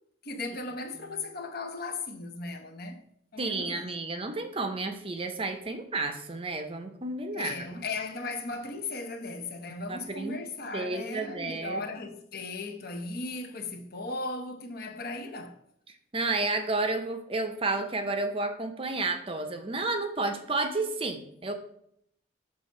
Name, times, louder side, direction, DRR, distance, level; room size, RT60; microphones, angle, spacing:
voice 1, 0.2-3.1 3.3-3.9 7.3-15.6, left 3 dB, 50° left, 0.8 m, -37 dB
voice 2, 3.4-7.8 9.9-10.4 10.7-11.8 16.1-21.5, right 3 dB, 30° right, 0.6 m, -31 dB
6.7 x 3.4 x 5.4 m
head